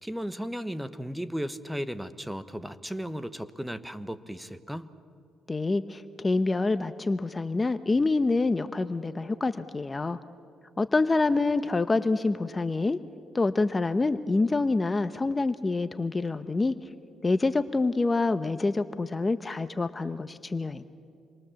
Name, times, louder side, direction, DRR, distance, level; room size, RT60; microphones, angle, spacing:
voice 1, 0.0-4.9, equal, 5° right, 12 dB, 1.0 m, -35 dB
voice 2, 5.5-10.2 10.8-13.0 13.3-16.7 17.2-20.8, left 3 dB, 25° left, 11 dB, 0.8 m, -26 dB
28.0 x 22.5 x 7.1 m, 2.4 s
cardioid pair, 90°, 0 cm